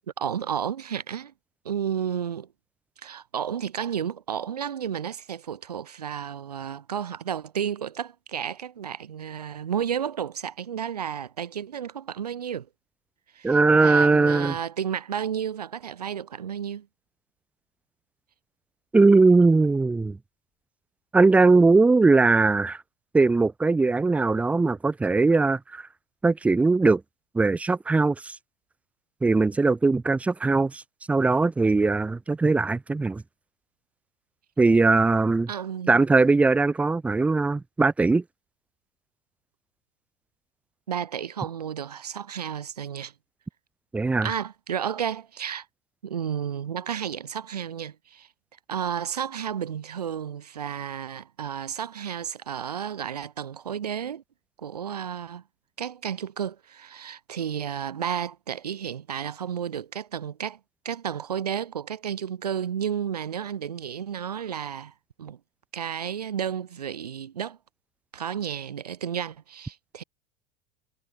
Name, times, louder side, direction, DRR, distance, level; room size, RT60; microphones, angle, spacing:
voice 1, 0.2-1.3 1.6-2.5 3.0-12.7 13.3-16.9 35.5-36.0 40.9-43.1 44.2-45.7 46.0-48.3 48.7-54.2 54.6-55.4 55.8-60.6 60.8-64.9 65.2-65.4 65.7-67.6 68.1-70.0, right 8 dB, 80° right, 1.0 m, -32 dB
voice 2, 13.4-14.5 18.9-20.2 21.1-22.8 23.1-25.9 26.2-27.0 27.3-28.3 29.2-30.8 31.1-33.2 34.6-35.5 35.9-38.2 43.9-44.3, right 3 dB, 5° right, 0.4 m, -20 dB
figure-of-eight pair, 80°, 20 cm